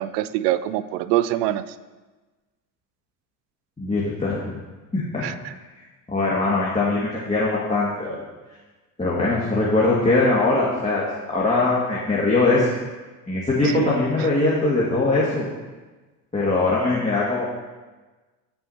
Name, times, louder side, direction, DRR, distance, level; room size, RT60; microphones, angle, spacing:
voice 1, 0.0-1.7 5.2-5.5 13.6-13.9 14.2-14.3, right 13 dB, 80° right, 15 dB, 0.6 m, -24 dB
voice 2, 3.8-4.6 4.9-5.2 6.1-8.2 9.0-12.7 13.3-15.5 16.3-17.5, left 2 dB, 15° left, -7 dB, 2.1 m, -21 dB
14.5 x 5.6 x 2.9 m, 1.2 s
hypercardioid pair, 65°, 47 cm